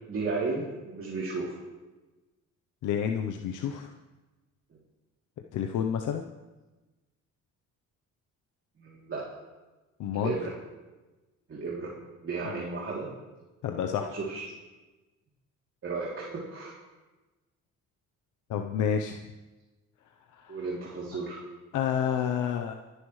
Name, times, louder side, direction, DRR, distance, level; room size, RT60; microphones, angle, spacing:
voice 1, 0.1-1.6 8.8-9.2 10.1-10.5 11.5-13.1 13.9-14.5 15.8-16.7 20.5-21.4, right 4 dB, 45° right, -5 dB, 3.0 m, -34 dB
voice 2, 2.8-3.9 5.5-6.2 10.0-10.3 12.4-12.6 13.6-14.1 18.5-19.2 20.4-20.6 21.7-22.7, left 8 dB, 80° left, 4 dB, 0.8 m, -29 dB
26.5 x 10.0 x 3.2 m, 1.2 s
cardioid pair, 90°, 30 cm